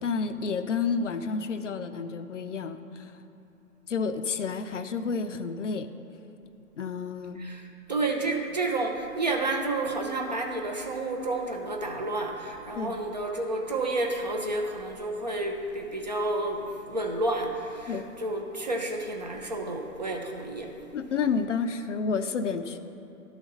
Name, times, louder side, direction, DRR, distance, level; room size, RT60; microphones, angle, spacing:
voice 1, 0.0-3.1 3.9-5.9 6.8-7.4 12.8-13.0 17.9-18.0 20.9-22.8, left 5 dB, 55° left, 9 dB, 0.5 m, -30 dB
voice 2, 7.4-20.7, right 2 dB, 30° right, 2 dB, 0.5 m, -30 dB
11.5 x 4.0 x 6.1 m, 3.0 s
figure-of-eight pair, 135°, 45 cm